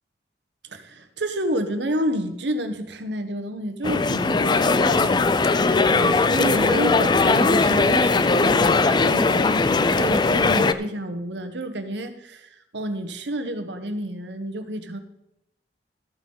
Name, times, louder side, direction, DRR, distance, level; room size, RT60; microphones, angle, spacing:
voice 1, 0.7-15.0, right 1 dB, 80° right, 8 dB, 1.1 m, -30 dB
sound 1, 3.8-10.7, left 3 dB, 25° left, 0.4 m, -19 dB
13.0 x 9.0 x 3.9 m, 0.84 s
head